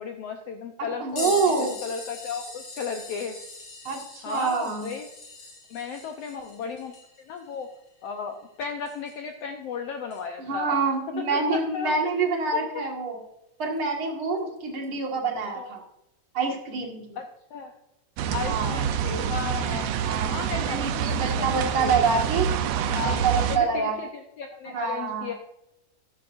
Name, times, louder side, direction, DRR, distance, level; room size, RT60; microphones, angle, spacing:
voice 1, 0.0-3.4 4.2-5.1 5.7-7.7 8.0-10.8 11.2-12.1 12.7-12.8 14.3-14.4 15.6-15.7 17.2-17.7 18.3-21.5 21.7-22.2 22.9-25.3, left 6 dB, 75° left, 5 dB, 1.5 m, -35 dB
voice 2, 0.8-1.7 3.8-4.9 10.4-13.2 13.6-15.8 16.3-17.2 18.4-18.8 20.0-20.3 20.6-22.5 23.2-24.0 24.7-25.3, right 4 dB, 45° right, 1 dB, 2.4 m, -26 dB
sound 1, 1.2-9.4 10.1-10.2 12.5-12.6 13.6-13.8 14.8-14.9, left 2 dB, 45° left, 3.0 m, -41 dB
sound 2, 18.2-23.6, right 9 dB, 75° right, 1.6 m, -27 dB
13.5 x 11.0 x 2.6 m, 0.87 s
omnidirectional pair, 3.6 m